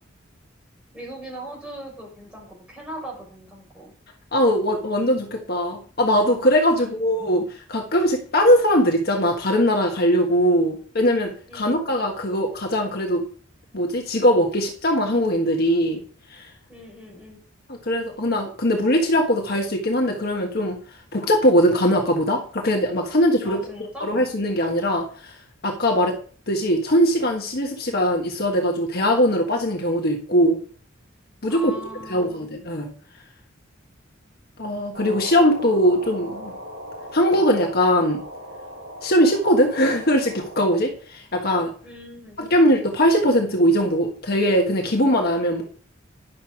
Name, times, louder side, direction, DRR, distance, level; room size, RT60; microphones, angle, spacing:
voice 1, 0.9-3.9 6.7-7.3 11.5-11.8 16.7-17.4 23.4-24.1 31.5-32.3 41.8-42.4, equal, 5° right, -2 dB, 4.7 m, -39 dB
voice 2, 4.3-7.4 7.7-13.3 13.7-16.0 16.3-16.5 17.8-20.8 21.1-23.6 24.0-25.4 25.6-26.1 26.5-30.6 31.4-31.7 32.1-32.9 34.6-36.5 37.1-38.2 39.0-41.7 42.4-45.6, equal, 50° left, 2 dB, 1.4 m, -20 dB
sound 1, 34.9-40.6, equal, 55° right, 6.2 m, -38 dB
10.5 x 6.8 x 4.6 m, 0.42 s
head